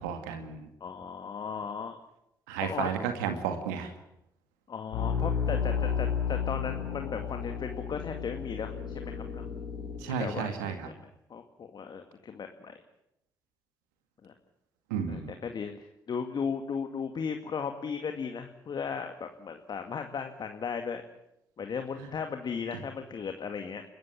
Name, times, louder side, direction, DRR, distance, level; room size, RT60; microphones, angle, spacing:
voice 1, 0.0-0.7 2.5-3.9 10.0-10.9 14.9-15.3 22.0-22.1, right 7 dB, 80° right, 6 dB, 2.1 m, -33 dB
voice 2, 0.8-2.0 2.6-2.9 4.7-9.5 10.1-10.9 11.3-12.8 14.2-14.3 15.1-21.0 21.6-23.8, left 6 dB, 50° left, 6 dB, 2.2 m, -36 dB
sound 1, 4.9-10.0, left 7 dB, 80° left, 4.7 m, -32 dB
29.5 x 14.5 x 8.9 m, 0.80 s
hypercardioid pair, 40°, 9 cm